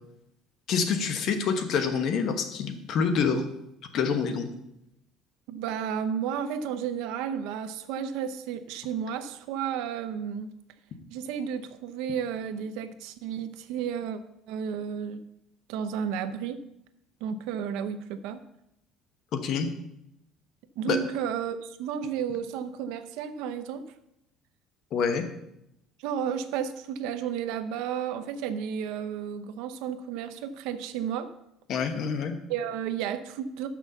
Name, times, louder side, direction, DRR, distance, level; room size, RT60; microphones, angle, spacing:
voice 1, 0.7-3.4 3.9-4.5 19.3-19.7 20.9-21.0 24.9-25.2 31.7-32.3, left 6 dB, 45° left, 7 dB, 1.0 m, -26 dB
voice 2, 5.5-10.5 11.1-14.2 14.5-15.2 15.7-16.6 17.2-18.4 20.8-23.8 26.0-31.3 32.5-33.7, right 8 dB, 85° right, 9 dB, 0.7 m, -32 dB
7.1 x 6.0 x 6.8 m, 0.83 s
cardioid pair, 165°, 0 cm